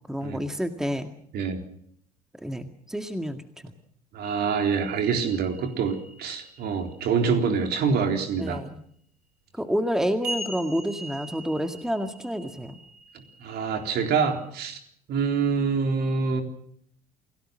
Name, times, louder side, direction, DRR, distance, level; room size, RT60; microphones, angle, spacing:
voice 1, 0.1-1.1 2.4-3.7 8.4-8.8 9.6-12.8, equal, ahead, 7 dB, 2.0 m, -29 dB
voice 2, 4.1-8.6 13.1-14.8 15.1-16.4, right 5 dB, 55° right, 4 dB, 3.8 m, -26 dB
sound 1, 4.2-7.4 10.2-14.5, right 1 dB, 80° right, 4.0 m, -42 dB
28.5 x 18.0 x 6.4 m, 0.66 s
figure-of-eight pair, 55°, 20 cm